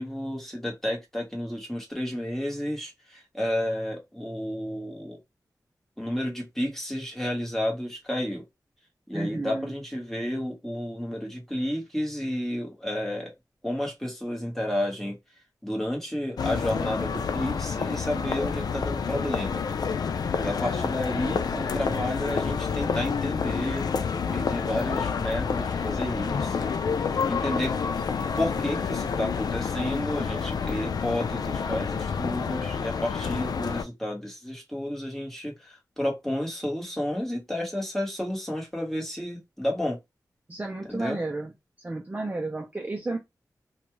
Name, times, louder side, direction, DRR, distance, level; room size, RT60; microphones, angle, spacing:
voice 1, 0.0-5.2 6.0-8.4 9.1-13.3 13.6-15.2 15.6-19.6 20.4-26.7 27.3-27.8 28.4-40.0 40.9-41.2, left 1 dB, 5° left, 1.3 m, -31 dB
voice 2, 9.1-9.7 40.5-41.5 41.8-43.2, right 2 dB, 25° right, 0.6 m, -32 dB
sound 1, 16.4-33.8, left 6 dB, 75° left, 0.3 m, -29 dB
2.5 x 2.3 x 3.1 m
wide cardioid pair, 90°, 7 cm